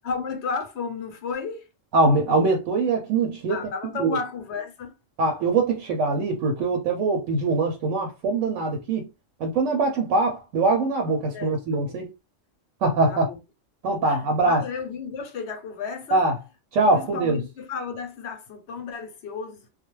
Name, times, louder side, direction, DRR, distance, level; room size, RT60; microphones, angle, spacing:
voice 1, 0.0-1.7 3.5-4.9 11.3-12.0 13.1-13.4 14.0-16.2 16.9-19.7, left 5 dB, 65° left, 0.8 m, -33 dB
voice 2, 1.9-3.6 4.0-4.2 5.2-9.1 9.4-12.1 12.8-13.3 13.8-14.6 16.1-16.4 16.7-17.4, right 3 dB, 85° right, 1.0 m, -22 dB
2.3 x 2.1 x 3.0 m
omnidirectional pair, 1.3 m